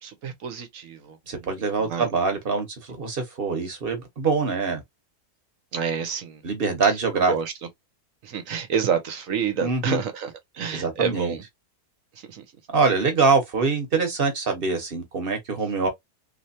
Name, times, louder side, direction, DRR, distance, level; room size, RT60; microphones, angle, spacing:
voice 1, 0.0-2.1 5.7-6.4 7.1-7.5 8.2-11.4 12.3-12.5, right 7 dB, 60° right, 1.2 m, -29 dB
voice 2, 1.3-4.8 6.4-7.3 9.6-10.0 10.7-11.4 12.7-15.9, right 4 dB, 40° right, 1.3 m, -24 dB
3.2 x 3.2 x 2.7 m
omnidirectional pair, 1.7 m